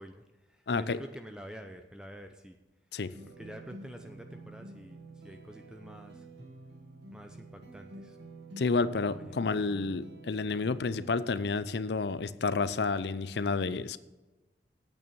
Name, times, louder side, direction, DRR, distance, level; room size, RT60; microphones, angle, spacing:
voice 1, 0.0-2.6 3.4-6.3 7.1-8.2 9.1-9.4, equal, 5° right, 5 dB, 0.6 m, -48 dB
voice 2, 0.7-1.0 2.9-3.1 8.6-14.0, left 4 dB, 70° left, 15 dB, 0.6 m, -30 dB
sound 1, 3.1-11.2, right 2 dB, 70° right, 1.7 m, -49 dB
9.1 x 8.6 x 7.0 m, 1.1 s
head